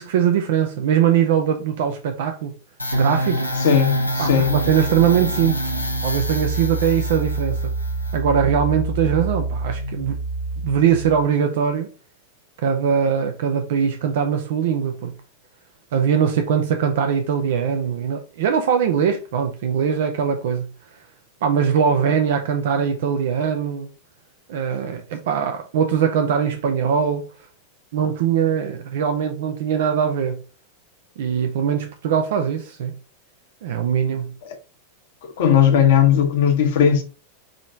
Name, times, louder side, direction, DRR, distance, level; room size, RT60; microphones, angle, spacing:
voice 1, 0.0-2.5 2.9-3.4 4.2-5.7 6.0-7.6 8.1-10.2 10.6-11.9 12.6-15.1 15.9-20.7 21.4-23.9 24.5-27.3 27.9-30.4 31.2-32.9 33.6-34.3, right 8 dB, 55° right, 0.7 m, -21 dB
sound 1, 2.8-11.2, right 1 dB, 85° left, 0.8 m, -25 dB
voice 2, 3.6-4.5 35.4-37.0, left 8 dB, 55° left, 1.1 m, -17 dB
6.3 x 3.1 x 2.7 m
figure-of-eight pair, 90°, 0 cm